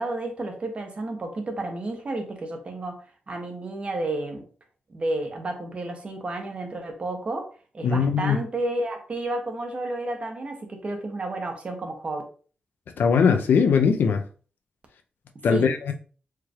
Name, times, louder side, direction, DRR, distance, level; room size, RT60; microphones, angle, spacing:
voice 1, 0.0-4.4 4.9-7.5 7.7-12.2 15.5-15.7, right 2 dB, 40° right, 0.9 m, -31 dB
voice 2, 7.8-8.4 13.0-14.2 15.4-15.9, left 6 dB, 80° left, 0.5 m, -20 dB
4.5 x 3.2 x 2.4 m
wide cardioid pair, 130°, 3 cm